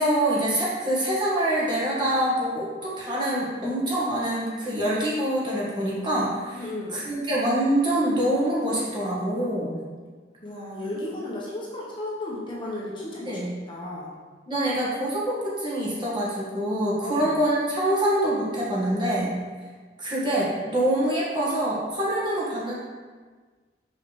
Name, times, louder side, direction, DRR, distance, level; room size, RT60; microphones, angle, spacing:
voice 1, 0.0-9.8 13.2-13.5 14.5-19.4 20.0-22.7, right 1 dB, 25° right, -7 dB, 1.5 m, -25 dB
voice 2, 6.5-7.0 10.4-13.4 13.7-14.1 17.0-17.4, left 1 dB, 30° left, -6 dB, 1.0 m, -34 dB
5.7 x 5.6 x 3.2 m, 1.4 s
head